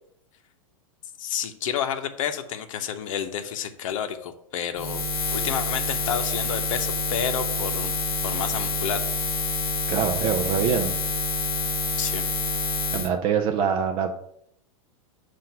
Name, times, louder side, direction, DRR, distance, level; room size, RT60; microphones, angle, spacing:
voice 1, 1.2-5.0 5.3-7.9 8.2-9.0 12.0-12.2, left 8 dB, 65° left, 7 dB, 0.8 m, -30 dB
Buzz, 4.7-13.1, left 3 dB, 40° left, 1.1 m, -27 dB
voice 2, 9.9-10.9 12.9-14.1, right 7 dB, 30° right, 3 dB, 0.4 m, -24 dB
7.5 x 2.5 x 5.7 m, 0.73 s
supercardioid pair, 155°, 18 cm